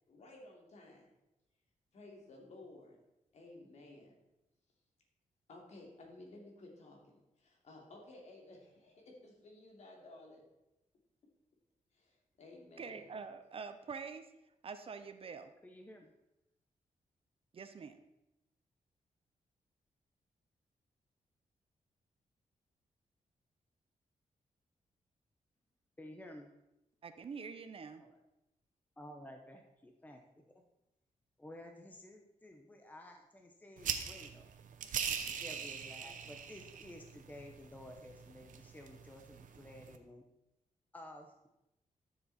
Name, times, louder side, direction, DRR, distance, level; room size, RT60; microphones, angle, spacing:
voice 1, 0.1-1.1 1.9-3.0 3.3-4.2 5.5-10.4 11.9-13.1, left 2 dB, 60° left, 0 dB, 2.9 m, -55 dB
voice 2, 12.8-14.3 14.6-15.5 17.5-18.0 27.0-28.0, right 5 dB, 45° right, 10 dB, 0.7 m, -46 dB
voice 3, 15.6-16.1 26.0-26.5 28.0-28.2 29.0-30.6 31.4-34.5 35.3-40.2 40.9-41.3, left 1 dB, 10° left, 3 dB, 0.9 m, -53 dB
sound 1, 33.8-40.0, right 7 dB, 80° right, 0.9 m, -42 dB
13.0 x 7.3 x 4.2 m, 0.91 s
wide cardioid pair, 135°, 13 cm